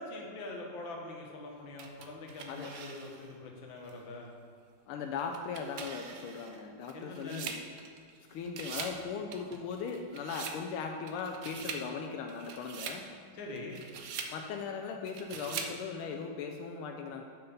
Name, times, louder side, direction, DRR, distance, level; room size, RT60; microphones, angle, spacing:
voice 1, 0.0-4.3 6.9-7.4 13.3-13.8, left 2 dB, 65° left, 0 dB, 1.9 m, -43 dB
sound 1, 1.8-3.3 3.9-4.0 5.2-8.2 8.4-9.0 9.3-10.6 11.1-11.9 12.3-13.0 13.6-14.4 15.1-15.8, right 6 dB, 80° right, 0.8 m, -43 dB
voice 2, 4.9-7.5 8.3-13.1 14.3-17.2, left 5 dB, 90° left, 3 dB, 1.5 m, -38 dB
6.7 x 6.5 x 5.5 m, 2.4 s
omnidirectional pair, 2.4 m